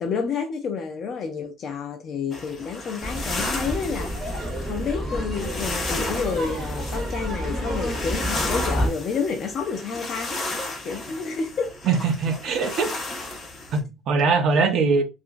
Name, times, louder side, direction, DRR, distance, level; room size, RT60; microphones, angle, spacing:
voice 1, 0.0-10.5 10.8-11.7, left 5 dB, 40° left, 0.4 m, -29 dB
sound 1, 2.3-13.8, left 2 dB, 20° left, 0.8 m, -34 dB
sound 2, 3.0-8.9, equal, 20° right, 1.1 m, -29 dB
voice 2, 11.9-12.9 13.7-15.0, right 4 dB, 50° right, 0.5 m, -21 dB
2.8 x 2.4 x 2.5 m
cardioid pair, 170°, 0 cm